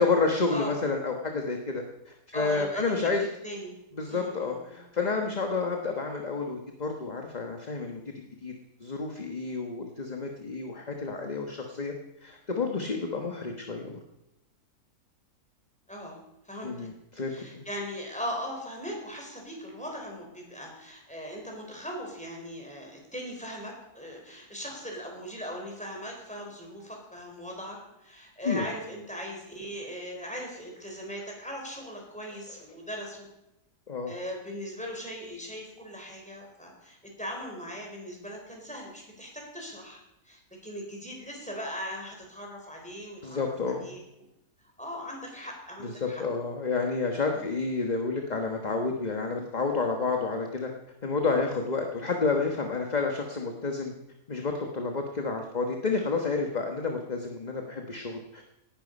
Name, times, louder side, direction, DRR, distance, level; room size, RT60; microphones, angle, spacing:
voice 1, 0.0-3.2 3.9-8.0 8.4-8.5 8.8-11.9 12.2-14.0 16.6-17.6 28.4-28.7 33.9-34.1 43.2-43.9 45.8-50.7 51.0-53.9 54.3-58.4, left 4 dB, 30° left, 3 dB, 1.3 m, -30 dB
voice 2, 2.3-3.8 4.0-4.8 15.9-16.2 16.4-16.9 17.3-33.3 34.1-44.0 44.8-46.2 47.3-47.5, equal, 5° left, 0 dB, 4.4 m, -39 dB
18.0 x 11.0 x 5.4 m, 0.88 s
omnidirectional pair, 1.7 m